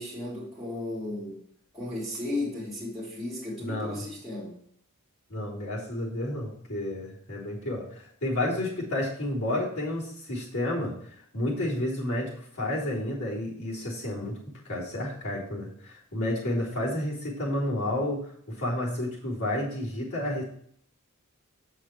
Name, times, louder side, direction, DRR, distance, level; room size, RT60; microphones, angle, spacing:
voice 1, 0.0-1.4 1.7-4.5, left 2 dB, ahead, -6 dB, 3.3 m, -34 dB
voice 2, 3.6-4.0 5.3-10.9 11.3-14.4 14.7-18.2 18.5-20.4, left 1 dB, 75° left, -5 dB, 3.6 m, -31 dB
7.9 x 6.5 x 4.5 m, 0.63 s
head